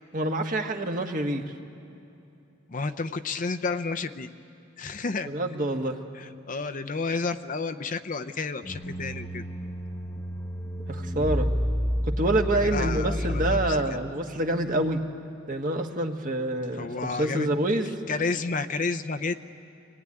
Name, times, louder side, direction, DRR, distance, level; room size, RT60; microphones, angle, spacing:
voice 1, 0.1-1.5 5.3-6.0 10.9-11.5 12.0-15.0 15.5-18.0, right 1 dB, 45° right, 4 dB, 1.5 m, -27 dB
voice 2, 2.7-4.3 4.8-5.3 6.1-9.4 12.6-13.6 16.7-17.5 18.1-19.4, left 4 dB, 40° left, 11 dB, 0.6 m, -31 dB
sound 1, 8.6-14.1, equal, 15° left, 0.8 m, -30 dB
25.0 x 18.0 x 9.8 m, 2.8 s
head